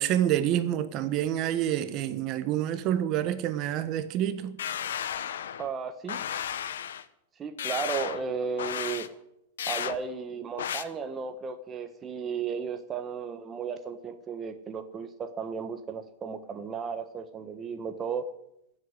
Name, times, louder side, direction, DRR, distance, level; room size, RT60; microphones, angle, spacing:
voice 1, 0.0-4.5, right 11 dB, 40° right, 1.2 m, -27 dB
sound 1, 4.6-5.7 6.1-7.0 7.6-8.2 8.6-9.1 9.6-10.0 10.6-10.8, left 9 dB, 85° left, 1.0 m, -33 dB
voice 2, 5.6-6.2 7.4-9.1 9.7-18.3, right 6 dB, 20° right, 1.1 m, -34 dB
15.0 x 8.0 x 9.6 m
supercardioid pair, 140°, 0 cm